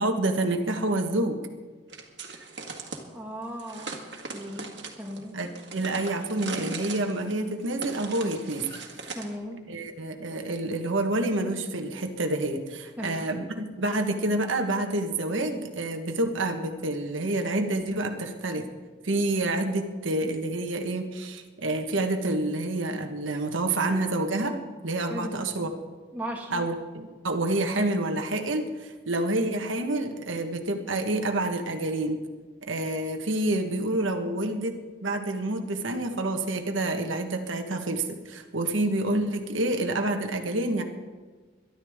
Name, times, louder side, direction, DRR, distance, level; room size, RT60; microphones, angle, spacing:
voice 1, 0.0-1.4 5.3-8.7 9.7-18.6 19.0-24.6 24.8-25.7 26.5-32.2 32.6-40.8, right 2 dB, 85° right, 4 dB, 1.4 m, -28 dB
sound 1, 1.9-3.0 3.6-9.3, right 3 dB, 60° right, 1.8 m, -39 dB
voice 2, 2.8-4.0 4.3-5.4 9.1-9.7 13.0-13.3 25.1-25.4 26.1-26.7, equal, 10° right, -2 dB, 1.8 m, -37 dB
22.0 x 12.0 x 3.7 m, 1.4 s
head